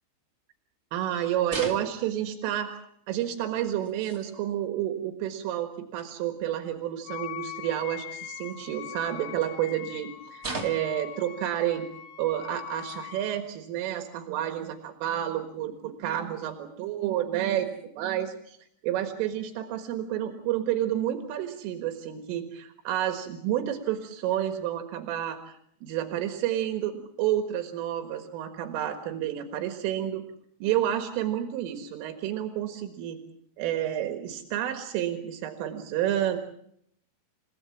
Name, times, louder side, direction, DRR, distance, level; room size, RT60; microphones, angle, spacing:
voice 1, 0.9-2.8 3.1-11.9 12.2-17.7 17.9-18.6 18.8-30.2 30.6-33.2 33.6-36.4, right 11 dB, 85° right, 5 dB, 4.2 m, -30 dB
sound 1, 1.5-2.3 3.4-3.5 3.8-4.3 6.0-6.1 8.1-8.8 9.4-9.5 10.4-11.0 12.0-12.1 12.6-13.2 13.6-13.7 14.8-14.9 16.1-16.2 17.5-17.8, right 3 dB, 25° right, 2.2 m, -39 dB
Wind instrument woodwind instrument, 7.1-13.4, left 13 dB, 90° left, 4.2 m, -42 dB
29.5 x 17.5 x 7.3 m, 0.70 s
omnidirectional pair, 5.6 m